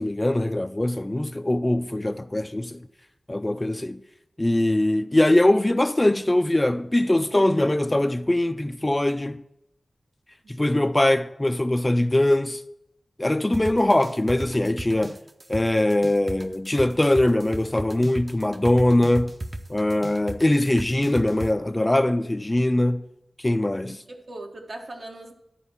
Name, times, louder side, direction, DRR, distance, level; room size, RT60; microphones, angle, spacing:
voice 1, 0.0-2.8 3.3-4.0 4.4-9.4 10.6-12.6 13.2-15.2 15.5-19.3 19.7-23.0 23.4-24.0, left 1 dB, 20° left, 0.4 m, -22 dB
voice 2, 10.4-10.9 23.9-25.3, right 2 dB, 70° right, 1.4 m, -40 dB
sound 1, 13.5-21.5, right 1 dB, 35° right, 0.8 m, -34 dB
11.5 x 4.8 x 7.1 m
wide cardioid pair, 75°, 0 cm